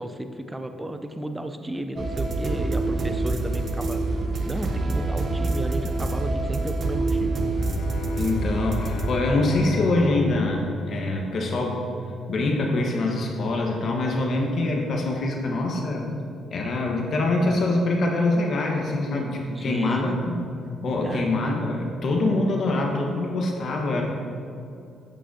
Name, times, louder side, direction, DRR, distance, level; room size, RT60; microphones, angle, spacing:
voice 1, 0.0-7.5 19.5-20.3 21.0-21.3 23.9-24.0, right 1 dB, 10° right, 7 dB, 0.6 m, -33 dB
sound 1, 2.0-10.1, right 2 dB, 50° right, 0.8 m, -26 dB
Bowed string instrument, 7.5-11.9, left 5 dB, 80° left, 0.3 m, -34 dB
voice 2, 8.2-11.8 12.3-16.1 16.5-20.3 20.8-24.0, left 2 dB, 60° left, 0 dB, 1.3 m, -24 dB
11.0 x 6.2 x 2.8 m, 2.5 s
cardioid pair, 90°, 0 cm